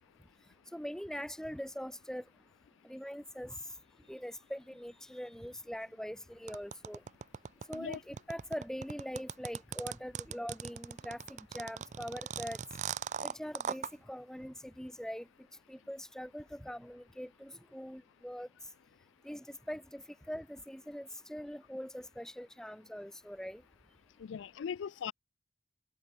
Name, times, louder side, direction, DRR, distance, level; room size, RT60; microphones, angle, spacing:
voice 1, 0.7-2.2 2.8-3.6 4.1-7.0 7.7-12.6 13.2-15.3 15.7-18.5 19.2-23.6, equal, 5° left, 1.1 m, -42 dB
sound 1, 6.5-13.9, right 7 dB, 40° right, 0.3 m, -39 dB
voice 2, 24.2-25.1, left 7 dB, 80° left, 0.3 m, -39 dB
head